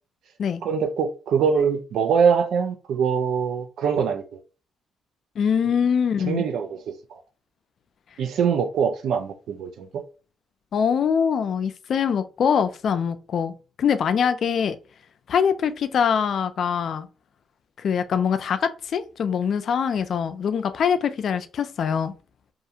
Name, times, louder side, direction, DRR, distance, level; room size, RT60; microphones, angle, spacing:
voice 1, 0.6-4.4 6.2-7.2 8.2-10.0, right 6 dB, 70° right, 0.3 m, -23 dB
voice 2, 5.4-6.4 10.7-14.8 15.3-17.1 17.8-22.1, left 7 dB, 60° left, 0.3 m, -23 dB
2.4 x 2.4 x 2.8 m
cardioid pair, 90°, 0 cm